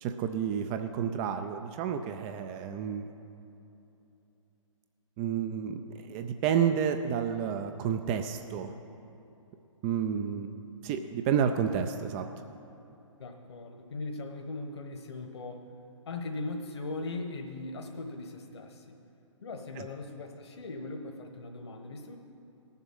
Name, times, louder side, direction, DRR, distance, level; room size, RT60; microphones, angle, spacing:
voice 1, 0.0-3.1 5.2-5.8 6.1-8.7 9.8-10.5 10.8-12.3 19.8-19.9, right 8 dB, 20° right, 7 dB, 0.3 m, -30 dB
voice 2, 13.2-15.7 16.1-19.0 19.4-22.2, left 2 dB, 55° left, 4 dB, 1.2 m, -39 dB
18.5 x 7.2 x 5.5 m, 2.9 s
figure-of-eight pair, 125°, 17 cm